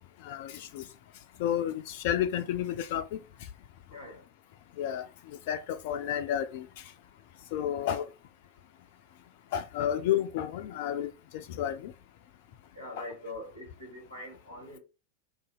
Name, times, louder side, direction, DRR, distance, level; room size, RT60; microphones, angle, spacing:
voice 1, 0.2-0.8 1.4-3.2 4.8-5.1 5.5-6.7 7.5-8.1 9.5-11.9, left 10 dB, 50° left, 0.3 m, -31 dB
voice 2, 3.9-4.2 7.6-7.9 12.7-14.8, left 1 dB, 85° right, 1.8 m, -43 dB
2.7 x 2.5 x 3.6 m
figure-of-eight pair, 90°, 0 cm